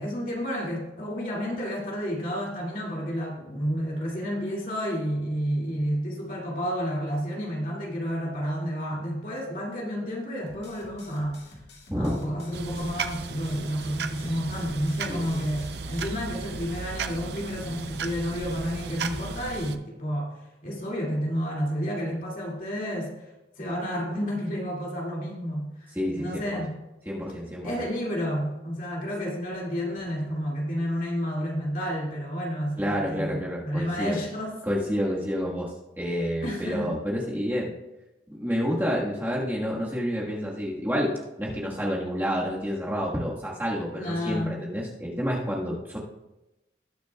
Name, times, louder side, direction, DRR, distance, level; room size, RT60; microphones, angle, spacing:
voice 1, 0.0-11.5 12.0-20.3 20.6-23.1 23.6-25.9 26.1-26.7 27.6-34.5 36.4-36.9 43.9-44.6, equal, 50° left, -3 dB, 2.3 m, -30 dB
sound 1, 10.5-16.1, left 2 dB, 70° left, 2.2 m, -50 dB
sound 2, 12.5-19.8, right 5 dB, 70° right, 0.5 m, -36 dB
voice 2, 25.9-26.6 27.0-27.7 32.8-34.2 34.6-37.7 38.3-46.0, equal, 10° right, -5 dB, 1.5 m, -29 dB
19.0 x 6.5 x 2.3 m, 0.97 s
head